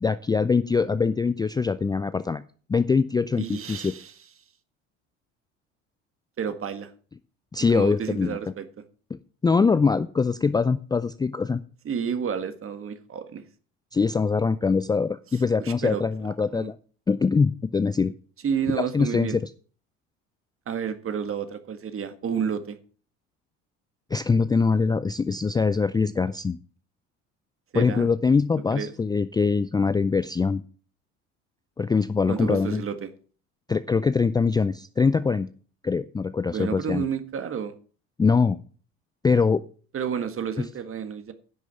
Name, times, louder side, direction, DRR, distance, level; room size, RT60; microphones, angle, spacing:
voice 1, 0.0-2.4 2.7-3.9 7.5-8.4 9.4-11.6 13.9-16.8 17.1-18.1 18.8-19.4 24.1-26.6 27.7-30.6 31.8-32.8 33.7-35.5 35.8-37.1 38.2-38.6 39.2-39.6, left 5 dB, 10° left, 13 dB, 0.4 m, -23 dB
voice 2, 3.4-4.1 6.4-6.9 7.7-8.7 11.9-13.4 15.6-16.0 16.5-16.7 18.4-19.4 20.7-22.8 27.7-28.1 28.7-28.9 32.3-33.1 36.5-37.7 39.9-41.3, right 7 dB, 35° right, 10 dB, 1.7 m, -30 dB
10.5 x 6.3 x 7.1 m, 0.41 s
hypercardioid pair, 80°, 36 cm